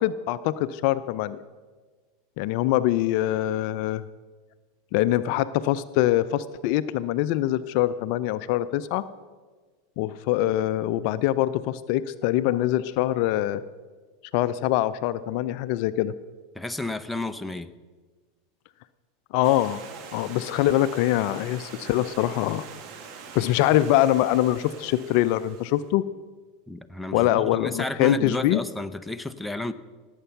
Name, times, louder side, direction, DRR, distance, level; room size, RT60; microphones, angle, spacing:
voice 1, 0.0-1.4 2.4-4.0 4.9-9.0 10.0-13.6 14.3-16.1 19.3-19.8 20.1-22.7 23.3-26.0 27.1-28.6, left 14 dB, 60° left, 15 dB, 0.5 m, -24 dB
voice 2, 16.5-17.7 26.7-29.7, left 2 dB, 5° left, 9 dB, 0.7 m, -32 dB
Stream, 19.4-25.9, right 6 dB, 50° right, 1.6 m, -43 dB
17.5 x 8.1 x 5.8 m, 1.4 s
hypercardioid pair, 90°, 0 cm